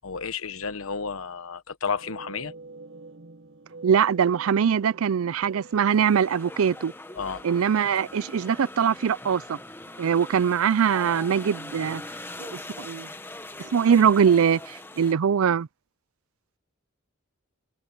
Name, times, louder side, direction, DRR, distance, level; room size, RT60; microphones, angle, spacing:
voice 1, 0.0-2.5 7.2-7.4, left 5 dB, 80° left, 1.1 m, -32 dB
sound 1, 2.0-8.1, right 3 dB, 65° right, 1.7 m, -47 dB
voice 2, 3.8-6.9 7.4-9.6 10.0-12.0 12.4-13.1 13.7-15.7, right 7 dB, 80° right, 0.4 m, -22 dB
sound 2, 5.6-15.1, left 2 dB, 10° left, 1.2 m, -41 dB
head